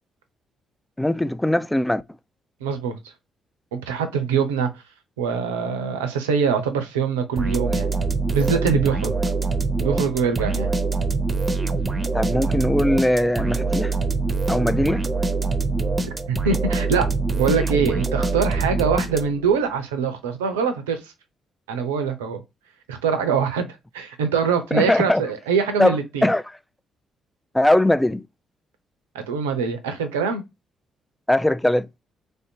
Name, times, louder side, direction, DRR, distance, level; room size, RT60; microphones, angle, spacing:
voice 1, 1.0-2.0 12.1-13.9 14.5-15.0 24.7-25.2 25.8-26.4 27.5-28.2 31.3-31.9, left 1 dB, 10° left, 0.4 m, -20 dB
voice 2, 2.6-3.0 3.7-4.7 5.2-7.9 8.3-9.1 9.8-10.7 16.0-17.1 17.3-21.1 21.7-22.4 22.9-26.3 29.1-30.4, right 6 dB, 85° right, 0.5 m, -23 dB
sound 1, 7.4-19.5, right 3 dB, 30° right, 0.7 m, -24 dB
3.2 x 2.7 x 2.7 m
hypercardioid pair, 40°, 0 cm